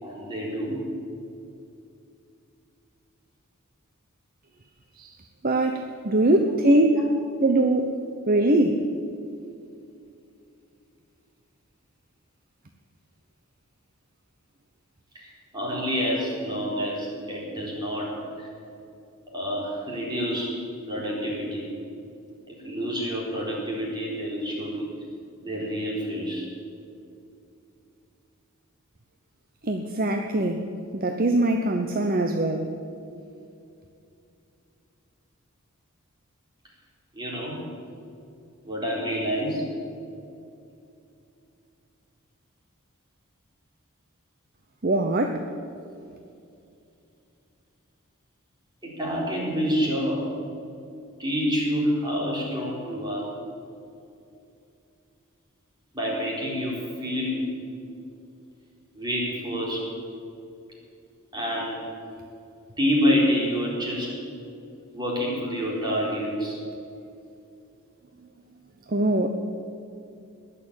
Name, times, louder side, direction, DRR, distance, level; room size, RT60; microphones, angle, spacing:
voice 1, 0.0-0.8 7.0-7.1 15.1-18.5 19.3-20.6 20.9-21.6 22.5-24.9 25.4-26.5 37.1-37.6 38.6-39.7 48.8-50.2 51.2-53.3 55.9-57.5 58.9-59.8 61.3-61.8 62.8-64.1 64.9-66.6, equal, 20° right, -4 dB, 4.3 m, -28 dB
voice 2, 5.4-7.1 7.4-8.0 8.3-8.8 29.6-30.6 30.9-32.7 44.8-45.4 68.9-69.3, right 1 dB, 40° right, 5 dB, 0.8 m, -22 dB
20.5 x 6.9 x 8.7 m, 2.6 s
head